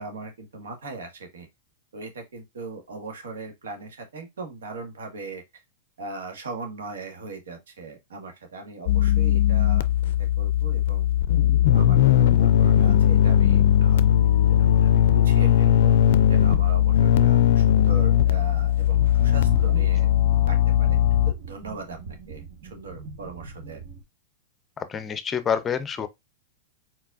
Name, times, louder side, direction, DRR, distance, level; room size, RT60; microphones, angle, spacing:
voice 1, 0.0-1.5 1.9-5.4 6.0-11.1 11.7-14.0 14.5-15.9 16.3-20.1 20.5-21.0 21.5-22.0 22.3-23.8, right 3 dB, 75° right, 1.5 m, -39 dB
sound 1, 8.9-21.3, left 10 dB, 65° left, 0.4 m, -19 dB
sound 2, 19.0-24.0, right 4 dB, 60° right, 1.3 m, -39 dB
voice 2, 24.8-26.1, left 7 dB, 25° left, 0.6 m, -27 dB
4.4 x 4.1 x 2.4 m
hypercardioid pair, 105°, 0 cm